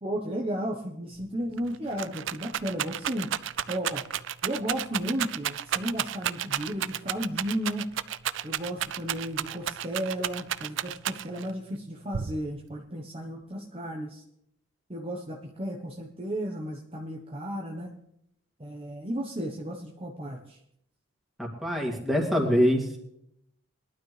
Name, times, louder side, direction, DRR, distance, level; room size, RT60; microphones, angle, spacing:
voice 1, 0.0-3.3 3.7-4.1 4.4-7.9 8.4-14.2 14.9-18.0 18.6-20.6, equal, 25° right, 0 dB, 1.1 m, -34 dB
Rattle, 1.2-1.3 1.6-11.5 12.1-12.8, right 10 dB, 60° right, 0.4 m, -32 dB
voice 2, 21.4-23.0, equal, ahead, -2 dB, 2.5 m, -24 dB
21.0 x 12.0 x 3.3 m, 0.77 s
head